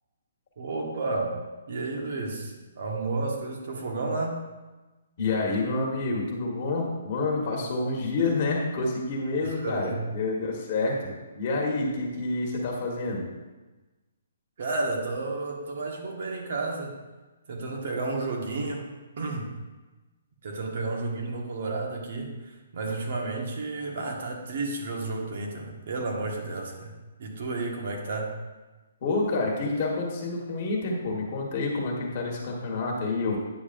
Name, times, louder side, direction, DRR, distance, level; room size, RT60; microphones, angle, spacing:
voice 1, 0.6-1.4 1.7-4.4 9.4-10.0 14.6-16.9 17.5-18.9 19.2-19.5 20.4-26.9 27.2-28.3, right 3 dB, 55° right, 0 dB, 1.5 m, -32 dB
voice 2, 5.2-13.2 29.0-33.4, left 3 dB, 40° left, -2 dB, 1.6 m, -28 dB
9.7 x 6.7 x 2.6 m, 1.2 s
hypercardioid pair, 160°, 0 cm